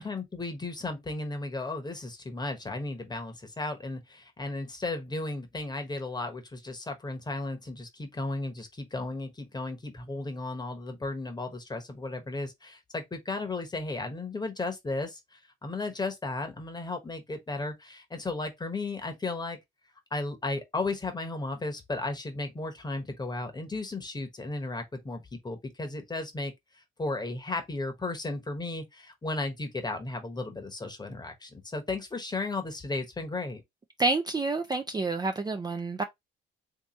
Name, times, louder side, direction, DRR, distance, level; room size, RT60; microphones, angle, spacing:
voice 1, 0.0-19.6 20.1-33.6, left 2 dB, 20° left, 1.1 m, -35 dB
voice 2, 34.0-36.0, right 3 dB, 20° right, 0.5 m, -28 dB
3.3 x 2.9 x 3.1 m
cardioid pair, 90°, 20 cm